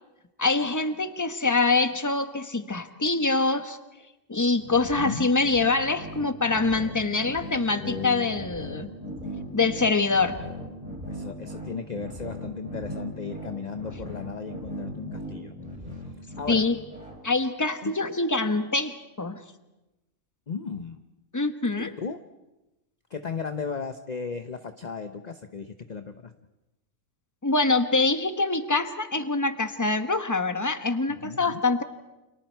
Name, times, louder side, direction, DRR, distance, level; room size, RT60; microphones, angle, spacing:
voice 1, 0.4-3.8 4.3-8.9 9.5-10.4 16.5-16.8 17.2-19.4 21.3-21.9 27.4-31.8, left 3 dB, 15° left, 9 dB, 1.2 m, -25 dB
sound 1, 4.6-17.2, equal, 40° right, 6.5 m, -38 dB
voice 2, 4.9-5.3 7.7-8.5 11.1-15.5 16.4-16.7 17.8-17.9 20.5-21.0 21.8-22.2 23.1-26.3 31.2-31.6, left 5 dB, 35° left, 8 dB, 0.9 m, -35 dB
30.0 x 27.5 x 4.6 m, 1.0 s
omnidirectional pair, 1.3 m